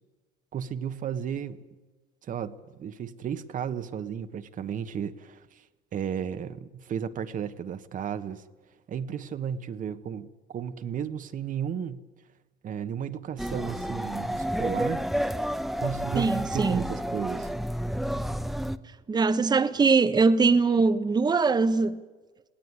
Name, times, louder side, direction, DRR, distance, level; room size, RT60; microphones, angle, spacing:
voice 1, 0.5-1.6 2.2-5.6 5.9-8.4 8.9-12.0 12.6-15.1 15.7-17.5, right 8 dB, 50° right, 1.3 m, -34 dB
sound 1, 13.4-18.8, equal, ahead, 0.9 m, -30 dB
voice 2, 16.2-16.8 19.1-22.0, right 4 dB, 25° right, 1.1 m, -22 dB
20.5 x 17.5 x 9.6 m
cardioid pair, 110°, 17 cm